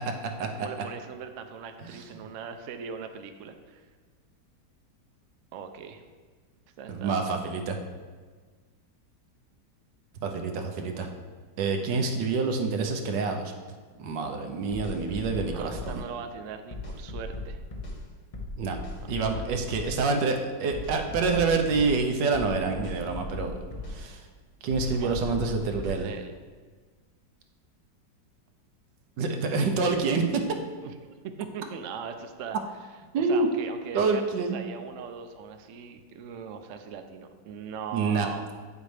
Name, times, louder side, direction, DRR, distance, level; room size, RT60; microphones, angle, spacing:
voice 1, 0.5-3.8 5.5-6.0 6.8-7.3 15.4-17.6 19.0-19.1 19.3-19.4 24.9-26.3 30.8-34.3 34.5-38.5, right 6 dB, 60° right, 6 dB, 0.8 m, -40 dB
voice 2, 6.9-7.8 10.2-11.1 11.6-13.5 14.0-16.0 18.6-18.8 19.1-24.2 24.6-26.1 29.2-30.4 33.1-33.5 33.9-34.6 37.9-38.3, right 4 dB, 85° right, 4 dB, 1.5 m, -27 dB
sound 1, 14.7-16.0 16.7-18.0 18.3-20.0 20.7-22.0 22.3-24.0 24.7-26.0, left 2 dB, 40° left, 0.5 m, -37 dB
9.0 x 7.3 x 3.3 m, 1.5 s
omnidirectional pair, 1.9 m